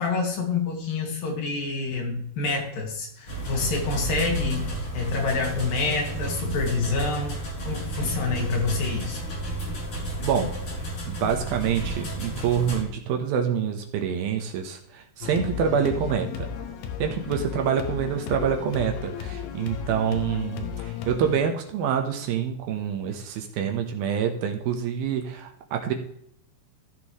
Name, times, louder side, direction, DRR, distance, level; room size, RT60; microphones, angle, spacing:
voice 1, 0.0-9.2, left 4 dB, 60° left, 0 dB, 3.7 m, -27 dB
sound 1, 3.3-12.8, right 1 dB, 35° left, 3.2 m, -32 dB
voice 2, 10.2-10.6 11.1-16.5 17.0-25.9, right 7 dB, 75° right, 4 dB, 2.7 m, -26 dB
sound 2, 15.2-21.4, left 8 dB, 80° left, 3.1 m, -34 dB
15.5 x 6.9 x 3.1 m, 0.70 s
omnidirectional pair, 4.7 m